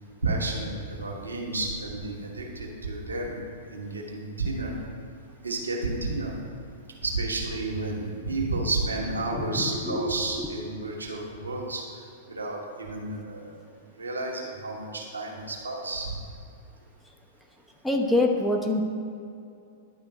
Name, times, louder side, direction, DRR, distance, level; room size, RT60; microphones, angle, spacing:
voice 1, 0.2-3.4 3.7-4.7 5.4-6.3 7.0-12.0 12.3-13.6 14.0-16.1, right 2 dB, 85° right, -2 dB, 1.2 m, -31 dB
voice 2, 9.2-10.0 10.4-10.5 17.8-18.8, left 2 dB, 5° left, 2 dB, 0.8 m, -25 dB
11.0 x 3.8 x 4.8 m, 2.5 s
figure-of-eight pair, 105°, 0 cm